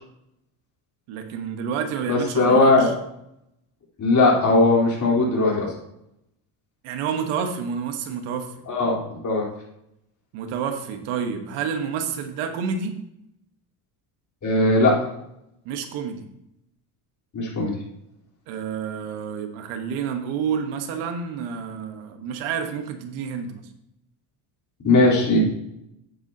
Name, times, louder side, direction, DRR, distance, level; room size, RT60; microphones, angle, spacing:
voice 1, 1.1-2.9 6.8-8.5 10.3-12.9 15.6-16.3 18.5-23.6, right 6 dB, 80° right, 6 dB, 1.4 m, -29 dB
voice 2, 2.1-2.9 4.0-5.7 8.7-9.0 9.2-9.4 14.4-14.9 17.3-17.7 24.8-25.4, left 2 dB, 35° left, -4 dB, 3.9 m, -18 dB
9.5 x 9.4 x 2.9 m, 0.81 s
supercardioid pair, 100°, 49 cm